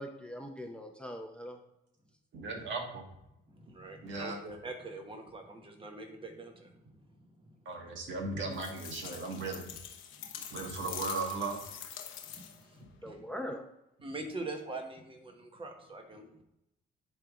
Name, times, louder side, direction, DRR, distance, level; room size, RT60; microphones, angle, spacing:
voice 1, 0.0-1.6 13.0-13.6, equal, 5° left, 3 dB, 0.7 m, -41 dB
voice 2, 2.3-3.0 4.0-4.4 7.6-9.6 10.5-11.6, right 3 dB, 70° right, 1 dB, 1.8 m, -36 dB
voice 3, 3.5-7.9 10.1-10.6 12.2-13.3 14.0-16.4, right 2 dB, 25° right, 3 dB, 1.3 m, -45 dB
sound 1, 8.5-12.7, left 9 dB, 90° left, 0.9 m, -45 dB
9.7 x 3.6 x 3.8 m, 0.84 s
cardioid pair, 90°, 20 cm